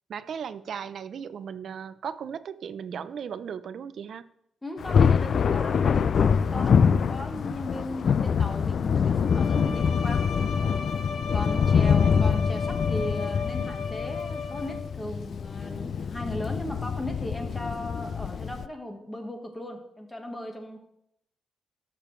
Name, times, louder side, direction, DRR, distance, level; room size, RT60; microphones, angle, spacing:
voice 1, 0.1-4.3 11.5-12.2, right 7 dB, 55° right, 15 dB, 0.5 m, -37 dB
voice 2, 4.6-10.3 11.3-20.8, left 1 dB, 10° left, 4 dB, 1.3 m, -37 dB
Thunder, 4.8-18.7, left 6 dB, 50° left, 0.4 m, -25 dB
Bowed string instrument, 9.2-15.1, left 5 dB, 70° left, 1.4 m, -35 dB
18.0 x 6.8 x 3.2 m, 0.78 s
cardioid pair, 130°, 0 cm